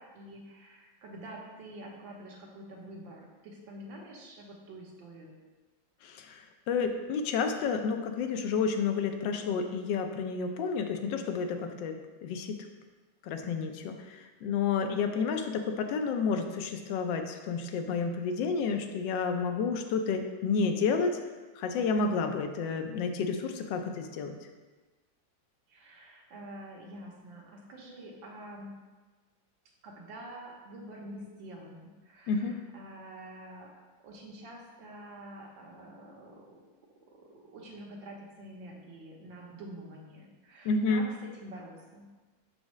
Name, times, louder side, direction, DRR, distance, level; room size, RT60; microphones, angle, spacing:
voice 1, 0.0-5.3 25.7-28.7 29.8-33.7 34.0-36.5 37.1-41.0 41.3-42.1, right 1 dB, 85° right, -1 dB, 1.7 m, -47 dB
voice 2, 6.0-12.6 13.2-21.1 21.5-24.3 32.3-32.6 40.6-41.0, left 5 dB, 80° left, 5 dB, 1.3 m, -30 dB
6.2 x 4.9 x 3.1 m, 1.3 s
omnidirectional pair, 2.0 m